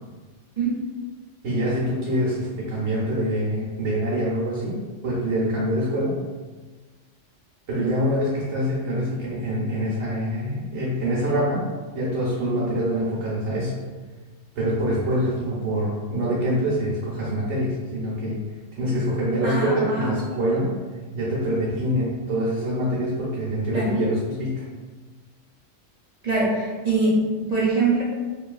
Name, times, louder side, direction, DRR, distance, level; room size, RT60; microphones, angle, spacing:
voice 1, 1.4-6.2 7.7-11.7 11.9-13.8 14.6-18.4 18.8-20.7 21.1-24.7, equal, 75° right, -7 dB, 0.9 m, -25 dB
voice 2, 19.4-20.2 23.7-23.9 26.2-27.2 27.5-28.0, right 3 dB, 55° right, -7 dB, 0.4 m, -23 dB
2.7 x 2.3 x 2.3 m, 1.3 s
omnidirectional pair, 1.2 m